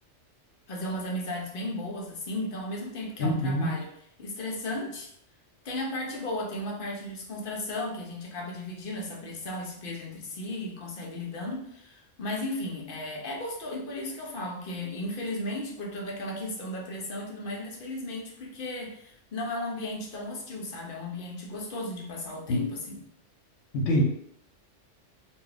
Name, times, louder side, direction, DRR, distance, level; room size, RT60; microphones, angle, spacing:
voice 1, 0.7-3.9 4.2-5.1 5.6-23.0, left 1 dB, 55° left, -1 dB, 0.7 m, -35 dB
voice 2, 3.2-3.8 22.5-22.6 23.7-24.0, equal, 75° left, 0 dB, 1.0 m, -25 dB
2.3 x 2.2 x 3.8 m, 0.70 s
omnidirectional pair, 1.3 m